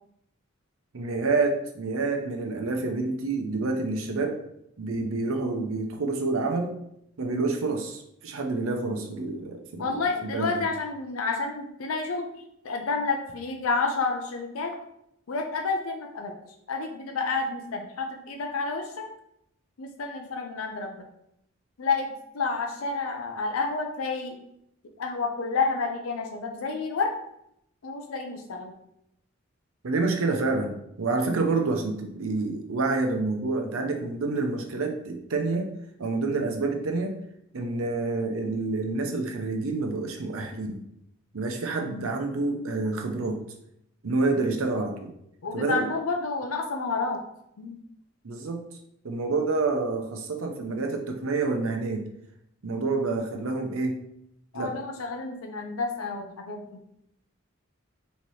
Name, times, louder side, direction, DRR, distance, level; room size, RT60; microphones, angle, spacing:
voice 1, 0.9-4.4 4.8-6.8 7.2-10.5 29.8-35.7 36.0-37.2 37.5-40.8 41.3-43.4 44.0-45.1 45.5-45.9 48.2-48.6 49.0-52.0 52.6-54.0 54.5-54.8, right 3 dB, 85° right, 3 dB, 0.7 m, -28 dB
voice 2, 9.8-12.3 12.6-14.8 15.3-16.3 16.7-18.9 19.8-21.1 21.8-24.4 25.0-27.1 27.8-28.7 41.8-42.1 45.4-47.2 47.6-47.8 53.0-53.2 54.5-56.8, left 4 dB, 85° left, 4 dB, 0.5 m, -30 dB
4.1 x 2.9 x 3.1 m, 0.76 s
head